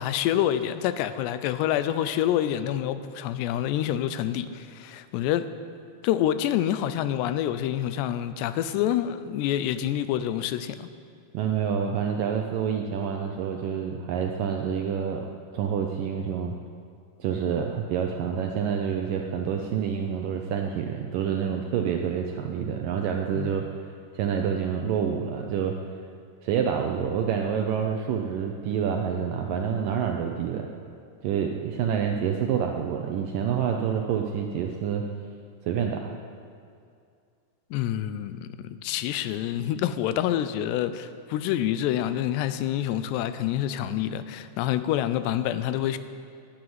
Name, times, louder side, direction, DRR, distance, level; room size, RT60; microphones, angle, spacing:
voice 1, 0.0-5.5 6.0-10.9 23.4-23.6 37.7-46.0, left 11 dB, 90° left, 12 dB, 2.8 m, -27 dB
voice 2, 11.3-15.3 15.5-16.6 17.2-25.8 26.4-30.7 31.2-35.0 35.7-36.1, right 7 dB, 80° right, 3 dB, 2.0 m, -27 dB
11.5 x 11.0 x 9.5 m, 2.4 s
omnidirectional pair, 4.8 m